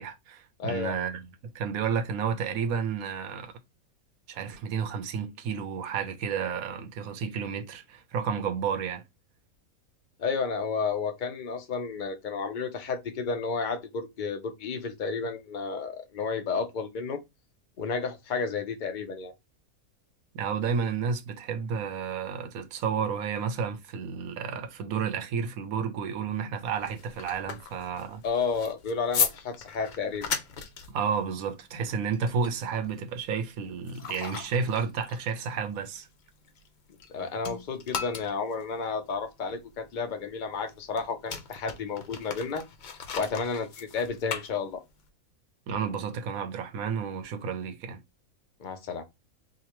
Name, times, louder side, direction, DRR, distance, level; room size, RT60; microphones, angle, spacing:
voice 1, 0.0-3.5 4.3-9.0 20.3-28.2 30.9-36.1 45.7-48.0, right 6 dB, 80° right, 1.1 m, -31 dB
voice 2, 0.6-0.9 10.2-17.2 17.8-19.3 28.2-30.3 37.1-42.6 43.1-44.8 48.6-49.0, left 5 dB, 45° left, 0.7 m, -32 dB
sound 1, 26.6-37.1 37.4-45.1, left 6 dB, 80° left, 0.4 m, -37 dB
4.9 x 2.2 x 2.9 m
omnidirectional pair, 1.5 m